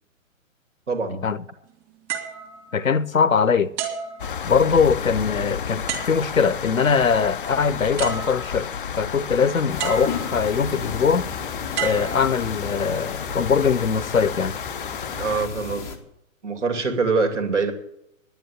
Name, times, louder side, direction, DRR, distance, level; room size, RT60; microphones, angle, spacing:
voice 1, 0.9-1.2 15.2-16.0 16.4-17.7, right 4 dB, 60° right, 2.7 m, -24 dB
sound 1, 2.1-3.3 3.8-4.9 5.9-6.6 7.6-7.7 8.0-8.8 9.8-10.6 11.7-12.9 13.6-13.8, right 7 dB, 20° right, 2.3 m, -33 dB
voice 2, 2.7-3.7 4.4-8.7 9.0-11.3 11.8-14.6, left 6 dB, 75° left, 0.9 m, -21 dB
sound 2, 4.2-15.5, left 7 dB, 40° left, 0.5 m, -32 dB
sound 3, 9.7-16.0, left 5 dB, 5° left, 0.7 m, -34 dB
10.5 x 10.0 x 8.7 m
figure-of-eight pair, 125°, 41 cm